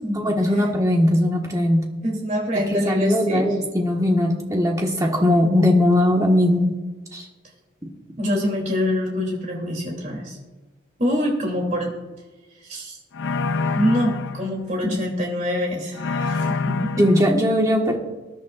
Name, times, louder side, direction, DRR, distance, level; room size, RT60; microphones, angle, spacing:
voice 1, 0.1-1.9 2.5-6.8 7.1-7.3 17.0-18.0, left 1 dB, 15° right, 0 dB, 1.6 m, -19 dB
voice 2, 2.0-3.5 8.2-10.4 11.0-11.9 12.7-13.0 13.7-16.9, equal, 40° right, 0 dB, 3.1 m, -25 dB
sound 1, 13.1-14.5 15.9-17.3, left 4 dB, 85° left, 0.5 m, -26 dB
20.5 x 10.5 x 2.5 m, 1.2 s
head